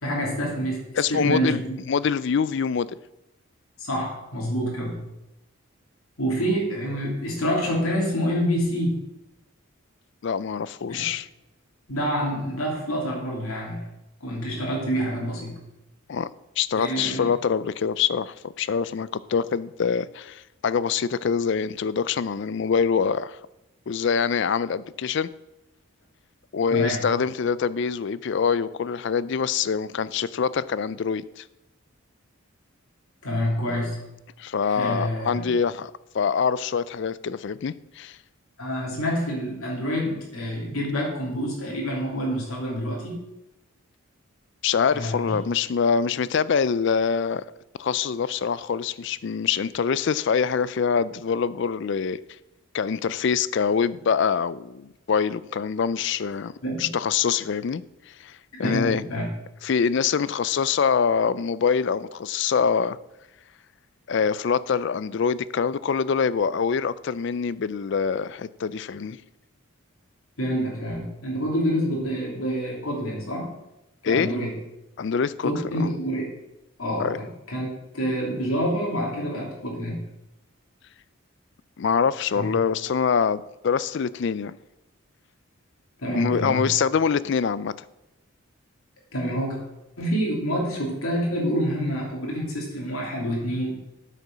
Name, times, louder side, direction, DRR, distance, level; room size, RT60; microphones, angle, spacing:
voice 1, 0.0-1.8 3.8-5.0 6.2-9.0 10.9-11.0 11.9-13.9 14.2-15.6 16.8-17.3 26.7-27.1 33.2-34.0 34.7-35.5 38.6-43.2 44.9-45.4 56.6-56.9 58.6-59.3 70.4-73.5 74.0-74.6 75.4-76.3 76.8-77.7 77.9-80.0 82.3-82.5 86.0-86.6 89.1-89.6 90.0-93.8, equal, 85° left, 3.0 m, -27 dB
voice 2, 0.9-1.6 1.9-2.9 10.2-11.3 16.1-16.3 16.6-23.4 23.9-25.3 26.5-31.4 34.4-38.2 44.6-47.4 47.8-52.2 52.7-56.5 56.8-59.0 59.6-63.0 64.1-69.2 74.0-74.3 75.0-75.5 75.8-75.9 77.0-77.2 81.8-84.5 86.1-87.7, left 6 dB, 55° left, 0.4 m, -24 dB
8.5 x 6.7 x 6.2 m
head